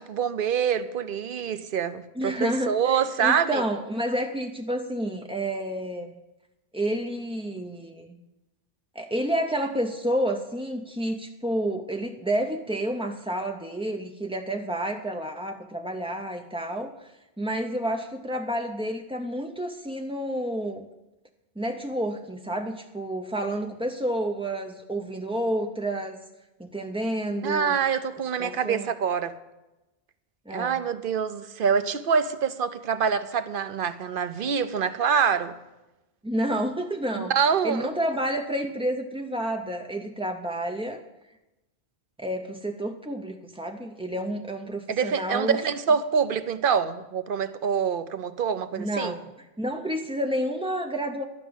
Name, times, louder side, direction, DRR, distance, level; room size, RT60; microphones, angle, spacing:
voice 1, 0.0-3.6 27.4-29.3 30.5-35.5 37.2-37.9 44.9-49.1, right 6 dB, 60° right, 12 dB, 0.8 m, -25 dB
voice 2, 2.2-6.1 6.7-8.2 8.9-17.1 17.4-20.9 21.6-26.2 26.6-27.8 28.4-28.9 30.5-30.8 36.2-41.0 42.2-45.6 48.8-51.2, right 1 dB, 10° right, 3 dB, 0.3 m, -30 dB
12.0 x 6.0 x 9.0 m, 0.99 s
omnidirectional pair, 1.1 m